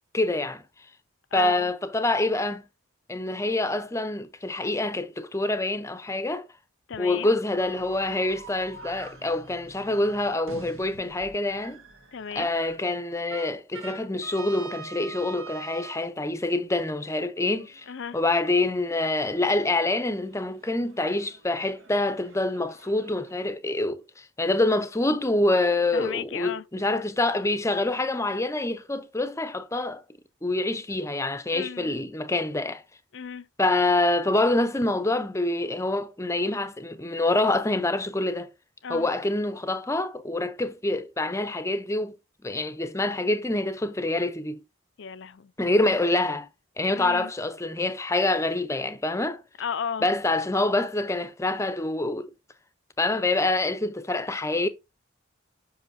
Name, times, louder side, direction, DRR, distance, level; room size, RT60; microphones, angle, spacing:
voice 1, 0.1-0.6 1.3-2.6 3.1-6.5 7.0-11.8 12.4-17.9 18.1-30.0 30.4-32.8 33.6-38.5 38.9-42.2 42.4-44.6 45.6-46.5 46.8-49.4 50.0-52.3 53.0-54.7, left 2 dB, 15° left, 0.6 m, -26 dB
voice 2, 1.3-1.7 6.9-7.3 12.1-12.5 17.9-18.2 25.9-26.6 31.5-31.9 33.1-33.5 38.8-39.1 45.0-45.5 46.9-47.3 49.6-50.1, left 7 dB, 60° left, 0.5 m, -34 dB
sound 1, 7.6-12.7 13.3-16.0 17.5-23.3, right 3 dB, 85° right, 1.6 m, -45 dB
7.7 x 5.6 x 2.7 m
head